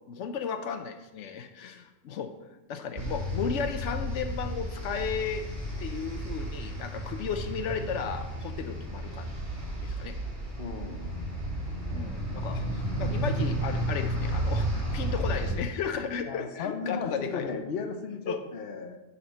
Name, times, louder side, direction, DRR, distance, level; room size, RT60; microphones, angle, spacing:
voice 1, 0.0-2.3 2.7-5.5 5.8-9.3 9.8-10.2 11.9-17.5 18.3-18.4, left 6 dB, 85° left, 7 dB, 0.9 m, -34 dB
sound 1, 3.0-15.5, right 1 dB, 40° right, 3.0 m, -32 dB
voice 2, 10.6-11.4 16.3-19.0, left 5 dB, 60° left, 5 dB, 1.0 m, -35 dB
9.9 x 4.2 x 5.3 m, 1.0 s
omnidirectional pair, 1.2 m